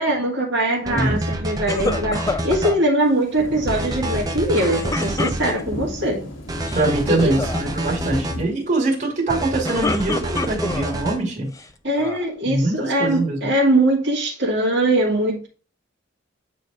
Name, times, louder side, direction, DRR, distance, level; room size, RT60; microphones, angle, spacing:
voice 1, 0.0-6.2 7.1-7.4 11.8-15.5, right 1 dB, 60° right, 1.7 m, -21 dB
sound 1, 0.9-2.7 3.7-5.6 6.5-8.4 9.3-11.2, right 1 dB, 20° right, 0.7 m, -27 dB
voice 2, 0.9-1.3 6.7-11.5 12.4-13.5, right 2 dB, 35° right, 2.1 m, -23 dB
sound 2, 1.7-2.8 4.5-5.8 6.5-6.9 7.2-7.6 9.4-10.9 11.5-12.3, left 3 dB, 15° left, 0.3 m, -28 dB
sound 3, 3.1-8.4, left 1 dB, 90° left, 1.7 m, -34 dB
8.9 x 3.2 x 4.7 m
head